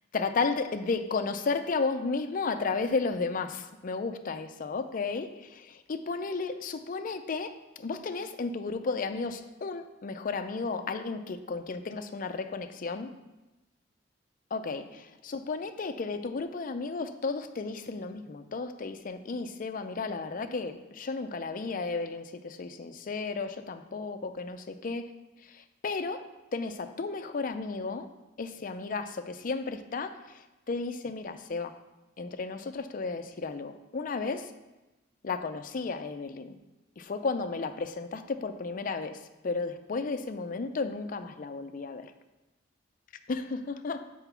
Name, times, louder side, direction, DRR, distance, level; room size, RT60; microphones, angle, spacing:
voice 1, 0.1-13.1 14.5-25.1 25.5-28.1 28.4-30.2 30.7-31.7 32.2-34.5 35.2-36.6 37.0-42.1 43.3-44.1, left 4 dB, 45° left, 9 dB, 0.4 m, -33 dB
6.0 x 4.5 x 5.6 m, 1.1 s
head